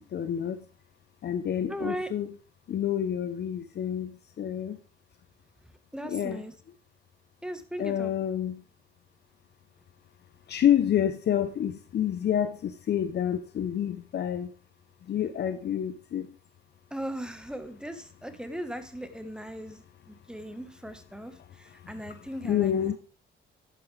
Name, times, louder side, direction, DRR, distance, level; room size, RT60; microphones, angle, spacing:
voice 1, 0.1-0.6 1.2-2.3 2.7-4.8 6.0-6.4 7.8-8.6 10.5-14.5 15.1-16.3 22.4-23.0, left 10 dB, 60° left, 10 dB, 0.9 m, -28 dB
voice 2, 1.7-2.1 5.9-6.5 7.4-8.1 16.9-22.8, right 1 dB, 5° right, 9 dB, 1.5 m, -38 dB
11.0 x 9.0 x 3.5 m, 0.38 s
cardioid pair, 90°, 20 cm